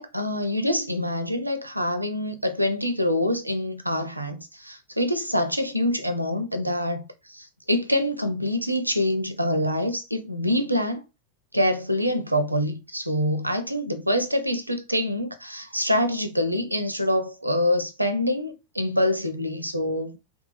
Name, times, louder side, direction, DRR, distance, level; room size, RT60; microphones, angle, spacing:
voice 1, 0.0-11.0 11.5-20.1, left 1 dB, 85° right, 0.5 m, -25 dB
2.7 x 2.3 x 4.0 m
figure-of-eight pair, 90°, 0 cm